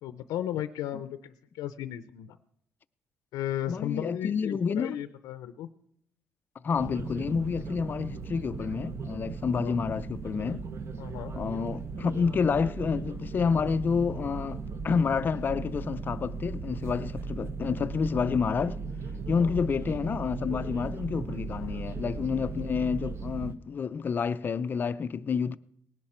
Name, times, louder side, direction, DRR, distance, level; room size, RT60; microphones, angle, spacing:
voice 1, 0.0-2.4 3.3-5.7 9.5-9.8 11.0-11.3 17.2-17.3 19.4-19.5 21.6-21.8, left 11 dB, 85° left, 0.6 m, -35 dB
voice 2, 3.7-5.0 6.6-10.6 11.3-18.8 19.3-25.6, left 6 dB, 35° left, 0.4 m, -29 dB
sound 1, 6.8-23.6, right 4 dB, 45° right, 0.9 m, -37 dB
18.5 x 11.0 x 4.4 m
cardioid pair, 125°, 6 cm